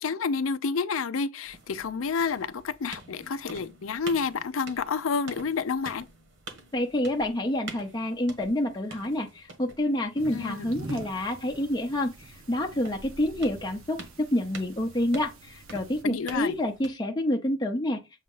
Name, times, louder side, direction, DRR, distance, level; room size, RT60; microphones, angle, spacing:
voice 1, 0.0-6.1 10.3-10.7 16.0-16.5, left 5 dB, 70° left, 0.5 m, -29 dB
sound 1, 1.4-16.9, right 3 dB, 60° right, 1.4 m, -47 dB
voice 2, 6.7-18.0, left 1 dB, 20° left, 0.7 m, -28 dB
sound 2, 10.2-16.0, right 2 dB, 80° right, 1.2 m, -45 dB
7.3 x 2.9 x 5.3 m
head